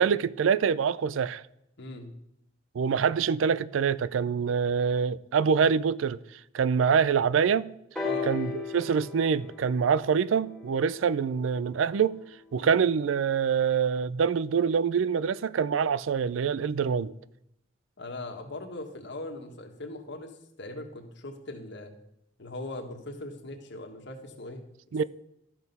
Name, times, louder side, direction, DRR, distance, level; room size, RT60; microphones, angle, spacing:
voice 1, 0.0-1.4 2.7-6.2 6.5-7.7 8.3-12.2 12.5-17.1 24.9-25.0, right 6 dB, 85° right, 0.4 m, -25 dB
voice 2, 1.8-2.1 8.0-8.3 12.6-12.7 18.0-21.9 22.4-24.6, left 2 dB, 65° left, 1.5 m, -40 dB
sound 1, 8.0-11.8 12.7-12.8, left 5 dB, ahead, 2.1 m, -37 dB
12.5 x 6.2 x 5.4 m
head